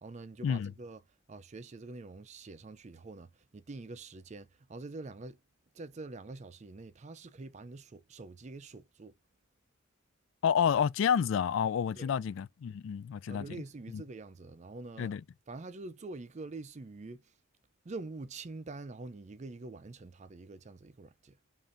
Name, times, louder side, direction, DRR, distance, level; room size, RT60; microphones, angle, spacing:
voice 1, 0.0-1.0 1.3-5.4 5.7-9.2 11.9-12.1 13.3-15.1 15.5-17.3 17.8-21.4, right 3 dB, 35° right, 0.4 m, -45 dB
voice 2, 10.4-13.5 13.9-14.0 15.0-15.2, left 7 dB, 65° left, 0.3 m, -29 dB
5.1 x 2.6 x 2.5 m
head